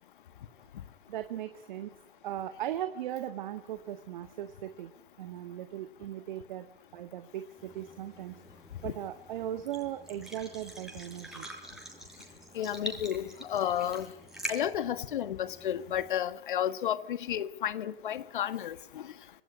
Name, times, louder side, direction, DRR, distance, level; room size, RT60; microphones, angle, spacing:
voice 1, 1.1-1.9 2.2-4.9 5.2-6.7 6.9-8.4 8.8-11.5, right 11 dB, 50° right, 1.8 m, -38 dB
sound 1, 7.6-16.1, right 1 dB, ahead, 5.8 m, -45 dB
voice 2, 12.5-14.0 14.5-18.7, left 10 dB, 60° left, 1.7 m, -32 dB
27.0 x 19.0 x 9.9 m
figure-of-eight pair, 105°, 29 cm